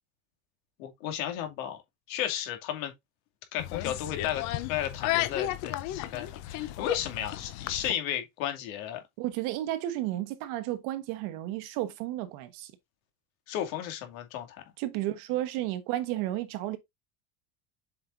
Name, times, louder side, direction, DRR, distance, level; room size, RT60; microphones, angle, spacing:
voice 1, 0.8-1.8 2.1-2.9 3.5-9.0 13.5-14.6, left 10 dB, 85° left, 2.6 m, -34 dB
sound 1, 3.6-7.9, left 14 dB, 50° left, 0.8 m, -33 dB
voice 2, 9.2-12.7 14.8-16.8, right 14 dB, 55° right, 1.3 m, -32 dB
7.6 x 5.3 x 2.6 m
cardioid pair, 180°, 40 cm